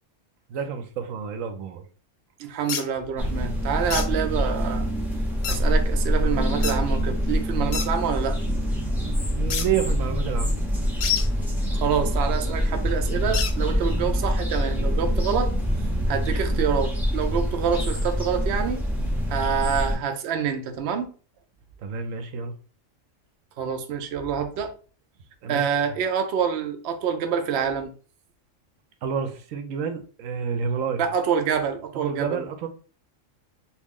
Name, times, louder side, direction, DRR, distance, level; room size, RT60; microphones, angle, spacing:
voice 1, 0.5-1.8 9.3-10.6 21.8-22.5 25.4-25.7 29.0-31.0 31.9-32.7, right 7 dB, 85° right, 1.0 m, -29 dB
voice 2, 2.4-4.9 5.5-8.4 11.8-15.5 16.1-18.8 19.3-21.1 23.6-24.7 25.5-27.9 31.0-32.4, right 7 dB, 60° right, 0.8 m, -26 dB
sound 1, 2.7-2.8 3.9-4.1 5.4-5.6 6.6-6.8 7.7-7.9 9.5-9.7 11.0-11.3 13.3-13.5, left 8 dB, 70° left, 0.8 m, -27 dB
sound 2, 3.2-20.0, equal, ahead, 0.7 m, -25 dB
3.0 x 2.5 x 3.6 m
omnidirectional pair, 1.3 m